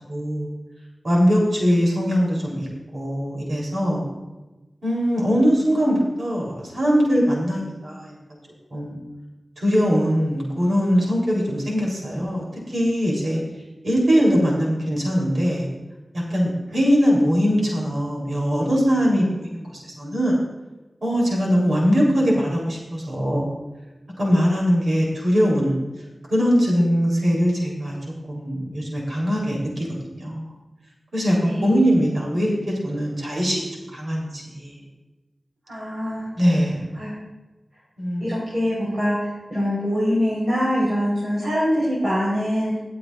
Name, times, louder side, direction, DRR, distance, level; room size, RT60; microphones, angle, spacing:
voice 1, 0.1-0.5 1.0-2.7 2.9-4.0 4.8-8.1 8.7-9.0 9.6-13.4 13.8-15.7 16.1-20.4 21.0-23.5 24.2-25.8 26.3-28.0 28.3-30.5 31.1-34.8 36.4-36.9 38.0-38.4, equal, 70° right, -3 dB, 3.6 m, -21 dB
voice 2, 31.4-31.9 35.7-36.3 37.0-37.1 38.2-42.8, equal, 50° right, -7 dB, 4.3 m, -24 dB
23.0 x 7.8 x 2.5 m, 1.1 s
wide cardioid pair, 85°, 0 cm